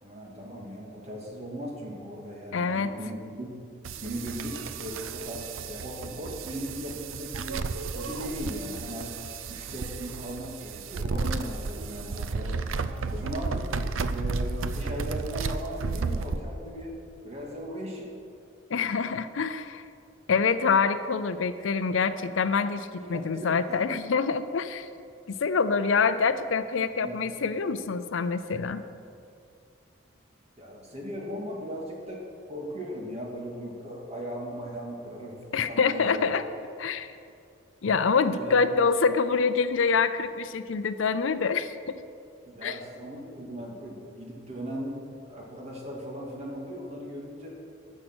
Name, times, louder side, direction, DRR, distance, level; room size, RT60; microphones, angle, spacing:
voice 1, 0.0-3.5 4.0-9.2 9.5-12.6 13.1-13.8 14.0-18.1 23.0-23.8 26.8-27.5 30.6-36.3 38.3-38.7 42.4-45.0 45.2-47.5, equal, 30° right, -2 dB, 2.2 m, -38 dB
voice 2, 2.5-2.9 18.7-19.8 20.3-24.9 25.4-28.8 35.5-36.5 36.8-37.1 37.8-42.0 42.6-42.8, left 5 dB, 75° left, 12 dB, 0.5 m, -26 dB
sound 1, 3.8-16.4, right 4 dB, 85° right, 0.5 m, -33 dB
15.0 x 6.5 x 6.2 m, 2.4 s
head